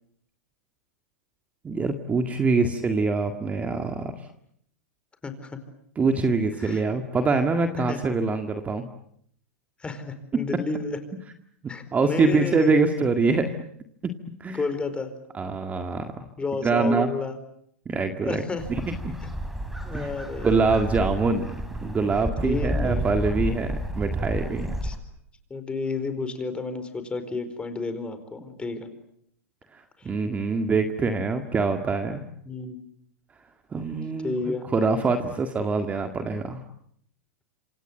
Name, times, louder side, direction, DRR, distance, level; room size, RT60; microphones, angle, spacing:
voice 1, 1.6-4.1 6.0-8.9 11.9-13.5 14.0-14.1 14.4-14.6 15.3-16.1 16.6-17.1 17.9-18.4 18.7-19.2 19.9-20.1 20.4-21.5 21.8-24.8 29.7-32.2 33.7-34.3 34.7-36.6, right 4 dB, 20° right, 6 dB, 1.9 m, -24 dB
voice 2, 9.8-11.0 11.7-12.7 14.5-15.1 16.4-17.4 18.2-18.6 19.2-19.3 19.8-20.5 22.4-23.0 24.8-24.9 25.5-28.9 30.0-30.1 32.4-32.8 34.2-34.6, left 4 dB, 15° left, 9 dB, 4.7 m, -31 dB
sound 1, 18.6-25.0, equal, 5° right, 3.6 m, -31 dB
27.0 x 27.0 x 7.8 m, 0.69 s
hypercardioid pair, 115°, 8 cm